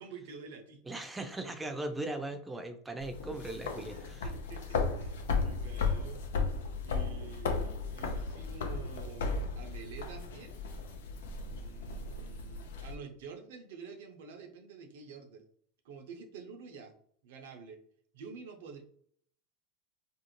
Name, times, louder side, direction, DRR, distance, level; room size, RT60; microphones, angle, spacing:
voice 1, 0.0-0.8 3.7-6.2 6.8-10.6 11.5-15.5 15.8-16.9 17.2-17.8 18.1-18.8, right 5 dB, 75° right, 4 dB, 0.6 m, -48 dB
voice 2, 0.9-3.9, right 2 dB, 10° right, 6 dB, 0.5 m, -38 dB
sound 1, 3.0-12.9, left 4 dB, 80° left, 0.4 m, -35 dB
2.5 x 2.0 x 3.0 m, 0.63 s
hypercardioid pair, 90°, 0 cm